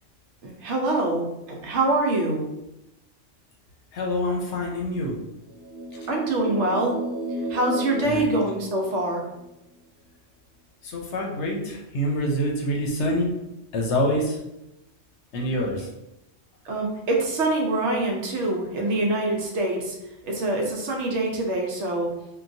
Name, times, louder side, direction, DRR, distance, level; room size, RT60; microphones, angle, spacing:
voice 1, 0.4-1.3 1.6-2.4 6.1-7.0 7.5-9.2 15.6-15.7 16.6-20.0 20.2-22.1, right 2 dB, 70° right, 0 dB, 0.9 m, -25 dB
voice 2, 3.9-5.1 8.0-8.3 10.8-13.3 13.7-14.4 15.3-15.9, equal, 70° left, 0 dB, 0.9 m, -26 dB
sound 1, 5.5-9.3, right 1 dB, 10° left, 1.0 m, -32 dB
3.8 x 2.2 x 2.6 m, 0.89 s
omnidirectional pair, 1.3 m